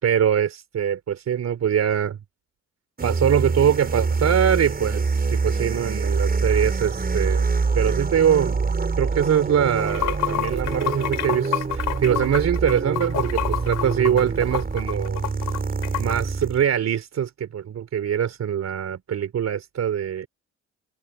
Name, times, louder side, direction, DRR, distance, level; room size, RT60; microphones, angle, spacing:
voice 1, 0.0-2.2 3.0-7.5 7.7-15.3 16.0-20.3, right 9 dB, 60° right, 3.9 m, -23 dB
sound 1, 3.0-16.6, right 4 dB, 30° right, 6.2 m, -25 dB
Water / Sink (filling or washing), 9.7-16.2, left 14 dB, 90° left, 4.1 m, -29 dB
cardioid pair, 90°, 30 cm